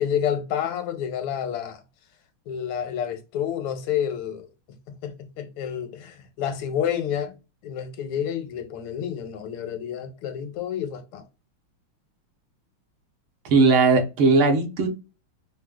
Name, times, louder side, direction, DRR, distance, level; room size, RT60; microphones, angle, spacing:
voice 1, 0.0-1.8 2.5-4.5 4.9-7.4 7.6-11.3, left 9 dB, 85° left, 1.6 m, -29 dB
voice 2, 13.4-14.9, right 4 dB, 75° right, 1.6 m, -18 dB
4.8 x 2.1 x 2.3 m
omnidirectional pair, 2.3 m